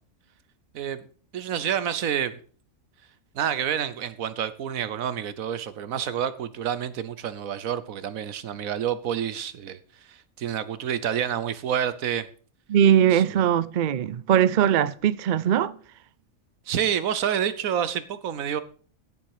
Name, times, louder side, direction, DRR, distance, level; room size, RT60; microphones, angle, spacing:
voice 1, 1.3-2.3 3.3-9.8 10.1-12.3 13.1-13.2 16.7-18.6, right 9 dB, 80° right, 1.3 m, -28 dB
voice 2, 12.7-15.8, right 9 dB, 60° right, 0.5 m, -20 dB
15.0 x 7.4 x 4.9 m
omnidirectional pair, 1.4 m